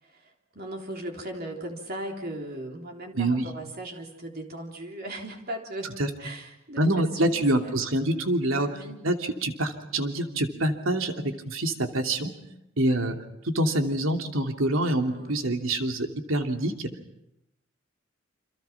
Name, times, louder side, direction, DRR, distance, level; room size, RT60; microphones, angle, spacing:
voice 1, 0.0-5.9 6.2-7.7 8.5-9.1 15.1-15.4, right 1 dB, 50° right, 1 dB, 3.6 m, -38 dB
voice 2, 3.2-3.5 6.0-6.1 6.8-8.7 9.0-9.1 9.4-12.3 12.8-13.2 13.5-16.9, right 1 dB, 85° right, 4 dB, 2.9 m, -26 dB
29.0 x 27.5 x 5.9 m, 0.84 s
head